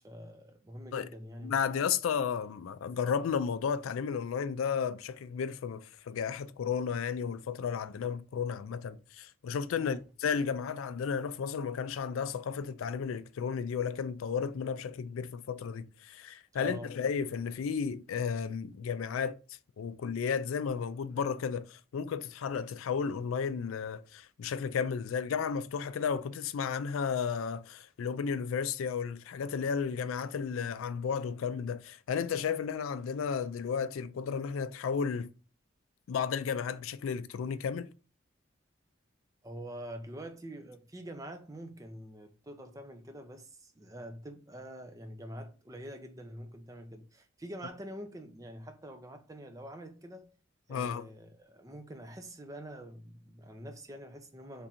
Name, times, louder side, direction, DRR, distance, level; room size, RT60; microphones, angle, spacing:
voice 1, 0.0-1.7 9.8-10.0 16.5-16.9 39.4-50.3 50.7-54.7, right 1 dB, 15° right, 0.5 m, -45 dB
voice 2, 1.4-19.4 19.8-35.3 36.1-37.9 50.7-51.0, left 6 dB, 90° left, 0.3 m, -33 dB
3.5 x 2.6 x 4.2 m
head